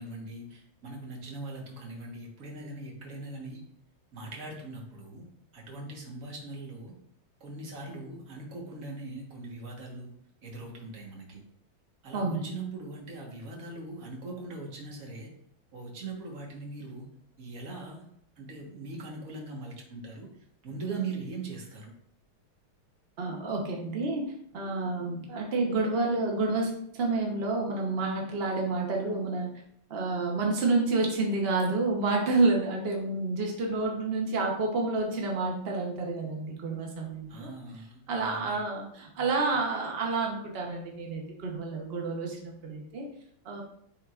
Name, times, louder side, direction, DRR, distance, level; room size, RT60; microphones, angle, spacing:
voice 1, 0.0-3.6 4.1-5.2 5.5-6.9 7.4-10.1 10.4-11.4 12.0-15.3 15.7-17.1 17.4-18.1 18.4-20.3 20.6-21.9 37.3-38.6, right 3 dB, 45° right, 0 dB, 1.5 m, -40 dB
voice 2, 23.2-29.5 29.9-37.5 38.1-43.0 43.4-43.6, right 3 dB, 70° right, 0 dB, 0.5 m, -29 dB
10.5 x 3.7 x 2.4 m, 0.70 s
omnidirectional pair, 2.3 m